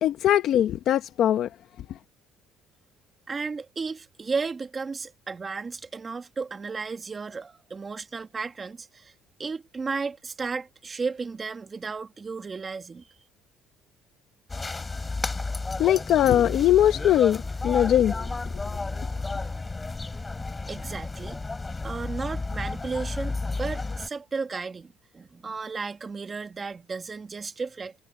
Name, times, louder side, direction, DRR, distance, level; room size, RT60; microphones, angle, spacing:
voice 1, 0.0-1.5 15.8-18.2, left 11 dB, 55° left, 0.9 m, -21 dB
voice 2, 3.3-9.1 9.4-13.2 20.7-21.4 21.8-28.0, right 4 dB, 25° right, 2.0 m, -34 dB
sound 1, 14.5-24.1, left 3 dB, 15° left, 7.0 m, -32 dB
cardioid pair, 135°, 0 cm